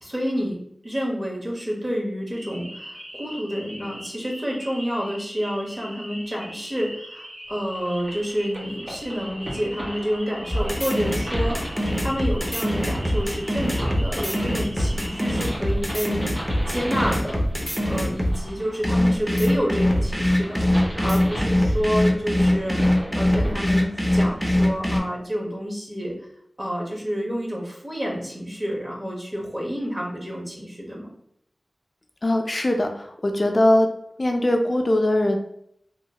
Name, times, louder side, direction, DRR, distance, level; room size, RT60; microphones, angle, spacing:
voice 1, 0.0-17.4 17.9-20.6 21.0-26.2 26.6-31.1, equal, 25° right, -2 dB, 1.0 m, -29 dB
sound 1, 2.3-15.3, equal, 90° right, 0.9 m, -41 dB
sound 2, 7.7-24.5, equal, 65° right, 1.2 m, -36 dB
sound 3, 10.5-18.4 18.8-25.0, left 1 dB, 5° right, 0.6 m, -22 dB
voice 2, 32.2-33.9 34.2-35.4, left 1 dB, 45° left, 3 dB, 0.3 m, -21 dB
2.9 x 2.3 x 2.8 m, 0.71 s
wide cardioid pair, 55°, 0 cm